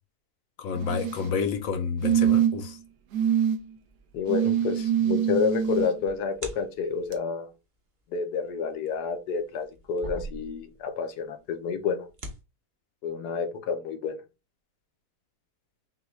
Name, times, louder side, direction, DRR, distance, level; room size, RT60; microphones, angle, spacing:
voice 1, 0.6-2.8, left 6 dB, 65° left, 1.0 m, -29 dB
sound 1, 0.7-1.3 2.0-2.7 3.1-3.6 4.3-5.9 7.1-7.2, right 9 dB, 85° right, 1.3 m, -24 dB
voice 2, 4.1-7.5 8.1-12.1 13.0-14.2, left 5 dB, 85° left, 1.4 m, -29 dB
sound 2, 5.6-7.0 8.5-11.0 11.2-11.3 11.9-12.4, right 1 dB, 35° right, 0.9 m, -41 dB
6.0 x 2.3 x 3.2 m
omnidirectional pair, 1.7 m